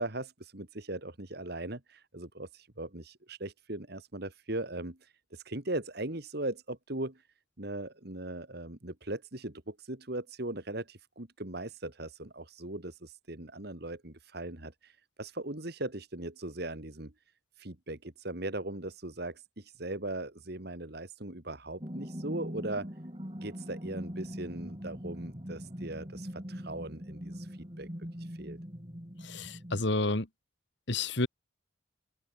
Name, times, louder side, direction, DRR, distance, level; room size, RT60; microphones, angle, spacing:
voice 1, 0.0-7.3 7.6-17.1 17.6-22.9 23.4-27.9 28.2-28.6, right 2 dB, 50° right, 2.1 m, -39 dB
sound 1, 21.8-29.8, equal, 25° right, 4.9 m, -42 dB
voice 2, 29.2-30.3 30.9-31.3, left 2 dB, 60° left, 2.1 m, -30 dB
open air
head